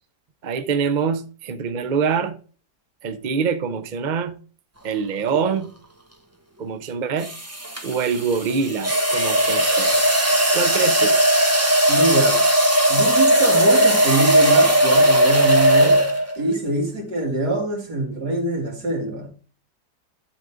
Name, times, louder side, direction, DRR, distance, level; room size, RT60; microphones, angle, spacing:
voice 1, 0.4-2.4 3.0-4.4 4.8-5.7 6.6-7.3 7.8-9.9 10.5-11.2, right 6 dB, 45° right, 0.6 m, -24 dB
sound 1, 5.3-5.6 7.2-16.4, right 1 dB, 10° right, 1.3 m, -18 dB
voice 2, 11.9-12.4 12.9-16.1 16.4-19.3, right 2 dB, 70° right, 3.1 m, -24 dB
11.5 x 4.0 x 5.0 m
omnidirectional pair, 1.8 m